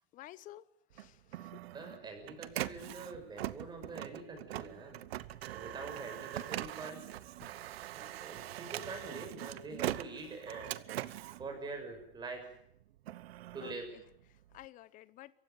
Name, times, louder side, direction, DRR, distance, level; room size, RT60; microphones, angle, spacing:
voice 1, 0.1-0.6 0.9-1.5 13.6-14.0 14.5-15.3, left 15 dB, 25° left, 18 dB, 1.0 m, -52 dB
Printer, 0.9-12.3 12.8-14.7, right 14 dB, 85° right, 1.1 m, -42 dB
voice 2, 1.7-5.0 5.5-7.0 7.9-10.7 11.4-12.5 13.5-13.9, right 3 dB, 15° right, 4 dB, 6.3 m, -45 dB
27.5 x 15.5 x 9.3 m, 0.74 s
supercardioid pair, 160°, 30 cm